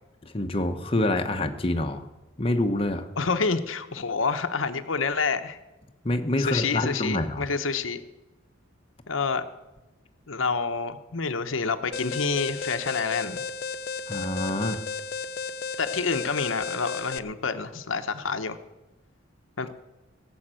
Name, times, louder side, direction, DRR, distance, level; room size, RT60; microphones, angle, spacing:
voice 1, 0.2-2.1 2.4-3.1 6.0-7.5 14.1-14.8, left 1 dB, 30° left, 4 dB, 1.0 m, -26 dB
voice 2, 3.2-5.6 6.4-8.0 9.1-9.5 10.3-13.4 15.8-18.6 19.6-19.7, left 4 dB, 80° left, 8 dB, 0.9 m, -28 dB
Alarm, 11.9-17.2, left 5 dB, 50° left, 0.6 m, -34 dB
17.0 x 7.3 x 8.9 m, 1.0 s
head